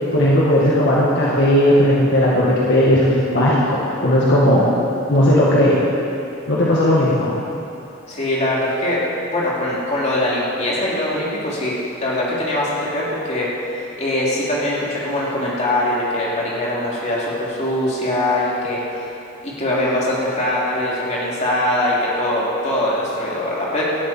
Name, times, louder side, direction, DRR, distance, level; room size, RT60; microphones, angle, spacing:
voice 1, 0.1-4.7 5.1-5.8 6.5-7.3, equal, 60° left, -6 dB, 1.9 m, -16 dB
voice 2, 8.1-9.0 9.3-11.7 12.0-19.1 19.4-23.8, left 1 dB, 35° left, -6 dB, 3.3 m, -22 dB
18.0 x 12.5 x 4.5 m, 2.9 s
head